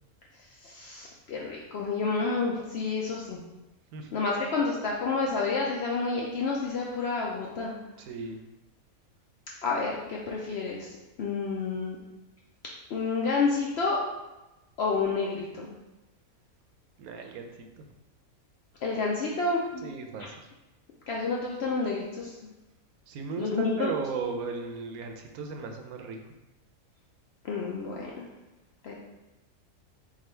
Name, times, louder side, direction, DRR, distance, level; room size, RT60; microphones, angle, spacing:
voice 1, 0.6-3.4 4.1-7.7 9.6-10.9 11.2-12.0 12.9-14.0 14.8-15.7 18.8-19.9 21.1-22.5 23.4-23.9 27.4-28.3 28.8-28.9, left 4 dB, 70° left, -3 dB, 0.6 m, -29 dB
voice 2, 8.0-8.4 17.0-17.9 19.8-20.3 23.1-26.2, right 5 dB, 80° right, 4 dB, 1.0 m, -36 dB
3.6 x 2.3 x 4.3 m, 1.0 s
omnidirectional pair, 1.5 m